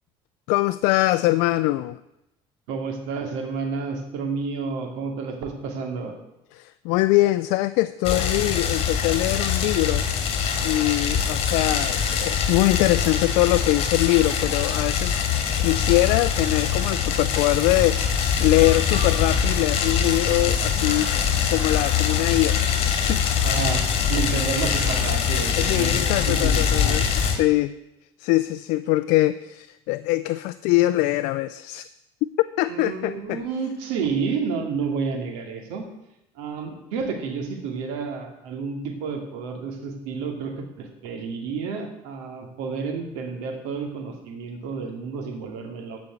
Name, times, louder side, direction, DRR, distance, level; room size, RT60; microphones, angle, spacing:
voice 1, 0.5-2.0 6.5-10.1 10.6-15.3 15.6-18.1 18.4-22.6 22.9-23.2 25.6-27.7 28.2-31.8 32.6-33.4, left 18 dB, 75° left, 11 dB, 0.5 m, -23 dB
voice 2, 2.7-6.1 23.4-27.0 32.7-35.9 36.4-46.0, right 5 dB, 85° right, 4 dB, 2.5 m, -30 dB
sound 1, 8.0-27.4, left 7 dB, 55° left, 2.4 m, -23 dB
14.5 x 5.3 x 8.1 m, 0.88 s
cardioid pair, 120°, 12 cm